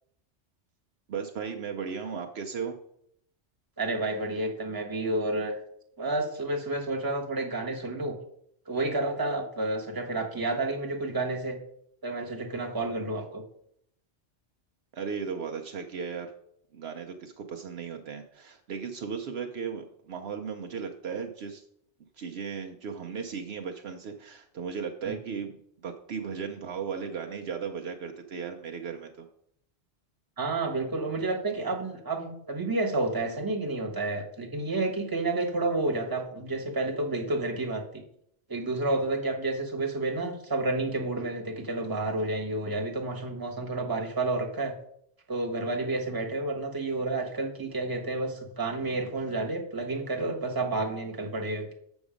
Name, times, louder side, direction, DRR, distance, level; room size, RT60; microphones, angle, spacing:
voice 1, 1.1-2.8 14.9-16.3 16.7-21.6 22.2-29.3, right 6 dB, 65° right, 4 dB, 0.9 m, -36 dB
voice 2, 3.8-5.6 6.0-8.1 8.7-11.6 12.0-13.4 30.4-38.0 38.5-44.7 45.3-51.7, right 2 dB, 20° right, 1 dB, 1.1 m, -30 dB
7.1 x 6.3 x 5.0 m, 0.71 s
omnidirectional pair, 1.2 m